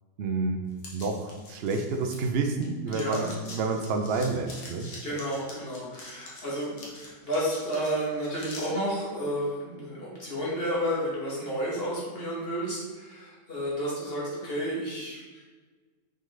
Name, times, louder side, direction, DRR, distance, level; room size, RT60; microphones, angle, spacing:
voice 1, 0.2-0.6 0.9-4.9, right 3 dB, 80° right, 4 dB, 0.5 m, -29 dB
sound 1, 0.8-2.6 2.9-8.7, left 2 dB, 80° left, 2.0 m, -45 dB
voice 2, 2.9-3.4 5.0-15.4, equal, 30° left, -7 dB, 2.3 m, -31 dB
6.4 x 5.3 x 3.9 m, 1.3 s
omnidirectional pair, 1.9 m